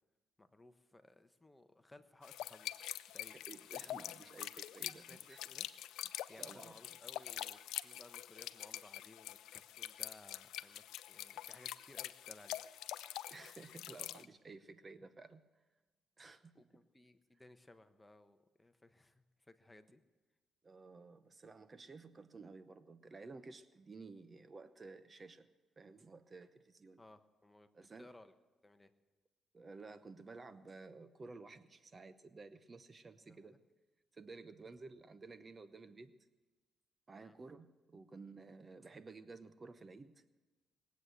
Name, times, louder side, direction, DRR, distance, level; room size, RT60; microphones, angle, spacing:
voice 1, 0.4-2.7 3.1-3.3 5.1-5.7 6.3-12.6 16.5-20.0 27.0-27.7 28.0-28.3 28.6-28.9 33.2-33.6 37.1-37.4, left 2 dB, 15° left, 9 dB, 1.0 m, -60 dB
sound 1, 2.2-14.2, left 13 dB, 85° left, 0.5 m, -46 dB
voice 2, 3.3-5.4 6.1-7.0 13.3-15.4 16.2-16.9 20.6-25.5 25.8-27.0 27.7-28.1 29.5-33.6 34.1-36.1 37.1-40.2, right 3 dB, 30° right, 12 dB, 0.8 m, -54 dB
20.5 x 8.4 x 7.8 m, 1.2 s
cardioid pair, 90°, 0 cm